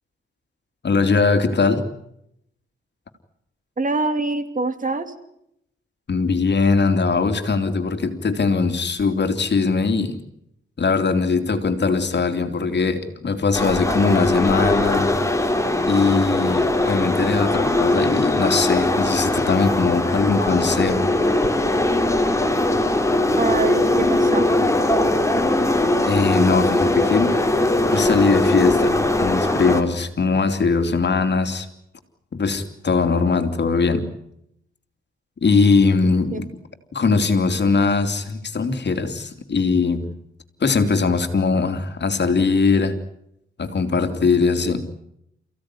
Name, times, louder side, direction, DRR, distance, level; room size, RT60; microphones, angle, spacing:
voice 1, 0.8-1.8 6.1-10.2 10.8-15.1 15.9-21.1 26.0-27.4 27.8-31.7 32.3-34.1 35.4-36.5 36.9-40.1 40.6-43.0 43.6-44.9, left 4 dB, 55° left, 3.1 m, -20 dB
voice 2, 3.8-5.1 23.4-24.7 36.0-36.4, right 3 dB, 40° right, 3.0 m, -25 dB
sound 1, 13.5-29.8, left 1 dB, 15° left, 3.8 m, -20 dB
29.0 x 16.5 x 9.9 m
wide cardioid pair, 95°, 21 cm